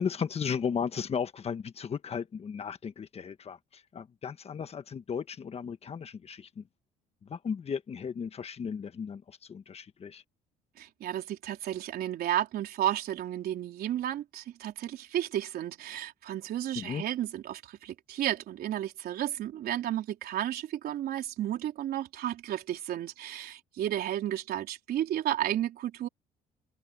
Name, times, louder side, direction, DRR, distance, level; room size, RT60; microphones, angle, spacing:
voice 1, 0.0-6.6 7.2-10.2 16.7-17.0, left 6 dB, 35° left, 1.4 m, -35 dB
voice 2, 10.8-26.1, right 12 dB, 65° right, 3.9 m, -33 dB
cardioid pair, 110°, 17 cm